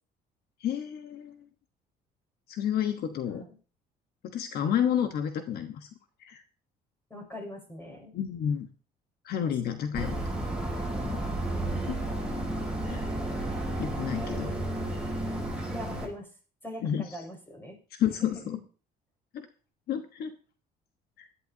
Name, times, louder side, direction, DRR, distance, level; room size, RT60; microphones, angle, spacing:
voice 1, 0.6-1.4 2.5-3.4 4.3-5.9 6.2-6.4 8.1-8.7 9.2-10.2 12.8-13.1 13.8-14.5 16.8-17.2 17.9-18.6 19.3-19.5 19.9-20.3 21.2-21.3, left 9 dB, 65° left, 7 dB, 1.2 m, -30 dB
voice 2, 7.1-8.1 10.1-10.5 11.4-11.9 14.2-14.4 15.2-15.4 15.7-16.3 16.6-17.8 18.2-18.5, equal, 15° left, 2 dB, 6.3 m, -42 dB
sound 1, 9.9-16.1, right 1 dB, 5° right, 6.7 m, -32 dB
17.0 x 11.5 x 2.8 m, 0.37 s
cardioid pair, 110°, 17 cm